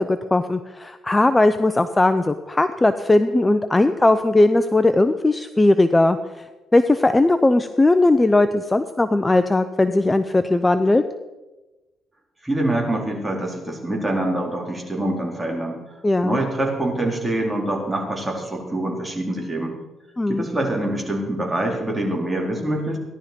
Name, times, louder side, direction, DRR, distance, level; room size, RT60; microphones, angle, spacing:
voice 1, 0.0-6.2 6.7-11.0 16.0-16.4 20.2-20.5, left 2 dB, 15° left, 10 dB, 0.7 m, -18 dB
voice 2, 12.4-19.7 20.3-23.0, right 1 dB, 15° right, -1 dB, 4.2 m, -25 dB
17.0 x 11.5 x 5.2 m, 1.1 s
cardioid pair, 90°, 0 cm